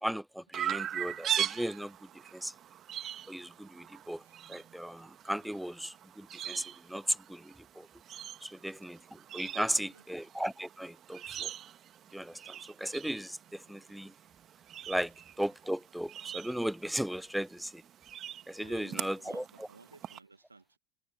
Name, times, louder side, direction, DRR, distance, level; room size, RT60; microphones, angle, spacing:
voice 1, 0.0-1.9 2.3-2.5 3.3-4.2 4.5-7.9 8.4-9.0 9.3-11.5 12.1-14.1 14.9-15.1 15.4-17.8 18.5-19.7, equal, ahead, 0.5 m, -36 dB
Chirp tweet, 0.5-20.2, right 10 dB, 40° right, 1.7 m, -41 dB
voice 2, 9.5-10.0 18.6-20.8, right 3 dB, 90° right, 2.2 m, -56 dB
figure-of-eight pair, 80°, 0 cm